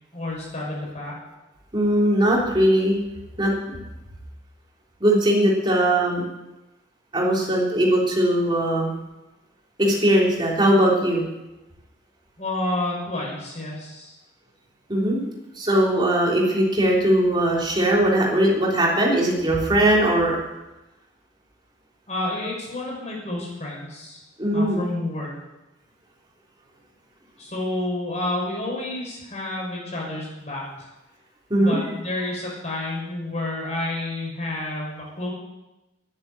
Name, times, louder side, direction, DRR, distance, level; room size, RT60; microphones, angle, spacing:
voice 1, 0.1-1.1 12.4-14.1 22.1-24.2 24.5-25.3 27.4-30.9 31.6-35.3, left 2 dB, 35° left, -3 dB, 6.0 m, -30 dB
voice 2, 1.7-3.0 3.4-3.8 5.0-6.2 7.1-8.9 9.8-11.2 14.9-15.3 15.6-20.4 24.4-24.8 31.5-31.8, right 1 dB, 25° right, -3 dB, 3.4 m, -20 dB
11.0 x 9.7 x 8.8 m, 1.0 s
head